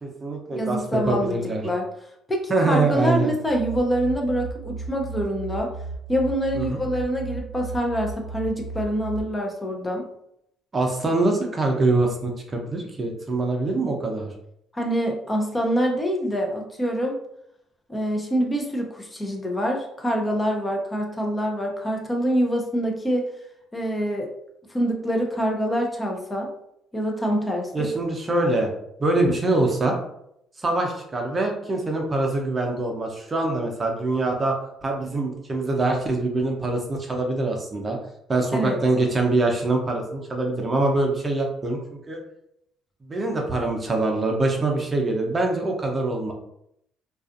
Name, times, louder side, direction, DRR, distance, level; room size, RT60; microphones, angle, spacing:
voice 1, 0.0-1.6 2.5-3.3 6.5-6.9 10.7-14.3 27.7-28.7 29.0-30.0 30.6-34.6 34.8-38.0 38.3-41.8 42.1-42.2 43.1-46.3, right 2 dB, 35° right, 1 dB, 0.6 m, -24 dB
voice 2, 0.5-1.8 2.3-5.7 6.1-10.1 14.7-17.2 17.9-23.3 23.7-24.3 24.7-26.5 26.9-27.9 38.5-38.8, equal, 20° left, 1 dB, 0.6 m, -25 dB
sound 1, 3.4-9.2, right 3 dB, 90° left, 1.2 m, -35 dB
2.4 x 2.4 x 2.5 m, 0.75 s
hypercardioid pair, 60°, 0 cm